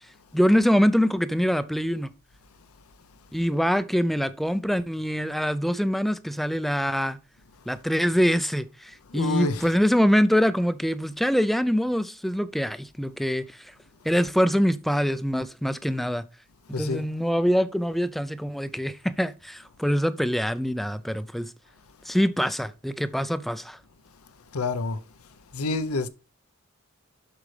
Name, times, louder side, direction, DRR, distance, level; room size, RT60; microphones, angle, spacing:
voice 1, 0.3-2.1 3.3-7.2 7.7-13.4 14.0-16.2 16.8-21.5 22.1-23.8, equal, ahead, 0.4 m, -24 dB
voice 2, 9.1-9.8 16.7-17.1 24.5-25.0 25.5-26.1, left 3 dB, 80° left, 0.7 m, -28 dB
8.4 x 6.3 x 3.2 m
head